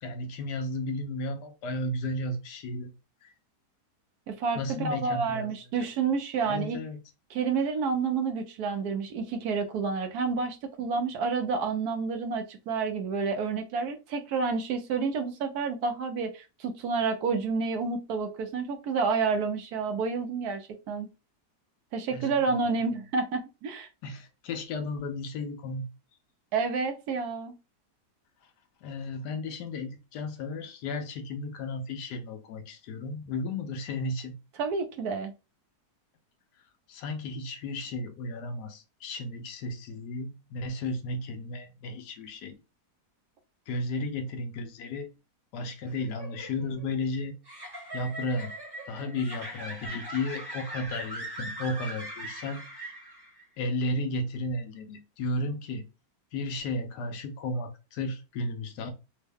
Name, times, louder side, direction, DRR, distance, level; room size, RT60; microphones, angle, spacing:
voice 1, 0.0-2.9 3.2-3.3 4.6-5.5 5.8-5.9 6.4-7.0 22.1-22.8 24.0-25.8 28.8-34.3 36.9-42.5 43.7-45.1 45.5-47.3 47.9-48.5 48.9-53.0 53.6-55.9 56.3-58.9, left 2 dB, 85° left, 1.2 m, -34 dB
voice 2, 4.3-6.8 7.3-21.1 21.9-23.9 26.5-27.5 34.6-35.3, right 5 dB, 70° right, 1.1 m, -29 dB
sound 1, 45.8-53.4, right 1 dB, 15° right, 0.9 m, -41 dB
3.5 x 2.2 x 3.4 m
omnidirectional pair, 1.8 m